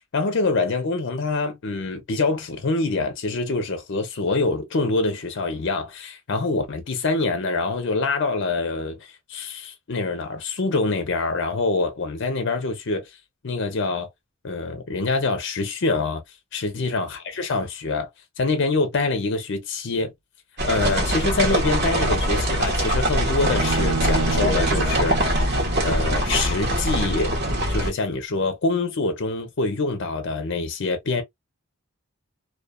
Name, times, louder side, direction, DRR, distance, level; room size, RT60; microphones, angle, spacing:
voice 1, 0.1-13.0 13.4-14.1 14.4-16.2 16.5-18.1 18.4-20.1 20.6-25.2 25.8-27.3 27.7-31.2, left 3 dB, 55° left, 0.6 m, -25 dB
sound 1, 20.6-27.9, right 1 dB, 50° right, 1.0 m, -23 dB
Bowed string instrument, 23.4-26.7, right 3 dB, 85° right, 0.5 m, -30 dB
2.4 x 2.3 x 2.2 m
head